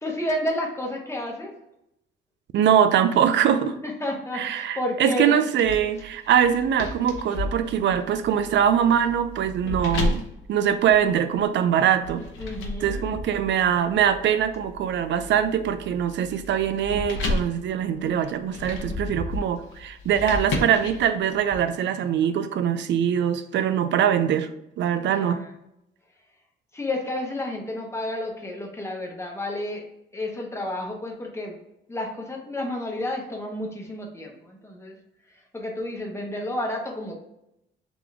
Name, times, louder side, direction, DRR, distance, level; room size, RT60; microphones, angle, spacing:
voice 1, 0.0-1.5 3.8-5.4 9.6-9.7 12.4-13.1 25.0-25.5 26.7-29.9 30.1-31.6 31.9-35.0 35.3-37.1, left 1 dB, 15° left, 0 dB, 1.1 m, -31 dB
voice 2, 2.5-3.8 4.3-12.2 12.8-24.5 24.8-25.4, right 9 dB, 65° right, 11 dB, 0.5 m, -22 dB
sound 1, 5.6-11.4 12.0-21.6, left 2 dB, 80° left, 0.9 m, -33 dB
3.7 x 3.0 x 3.6 m, 0.82 s
cardioid pair, 90°, 20 cm